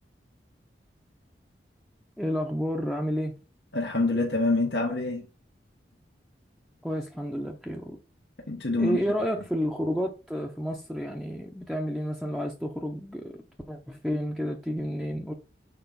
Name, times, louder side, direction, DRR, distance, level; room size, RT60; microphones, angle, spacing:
voice 1, 2.2-3.4 6.8-8.0 8.8-15.3, equal, ahead, 0.6 m, -31 dB
voice 2, 3.7-5.2 8.5-9.0, left 2 dB, 80° left, 1.3 m, -26 dB
6.8 x 4.4 x 3.9 m
head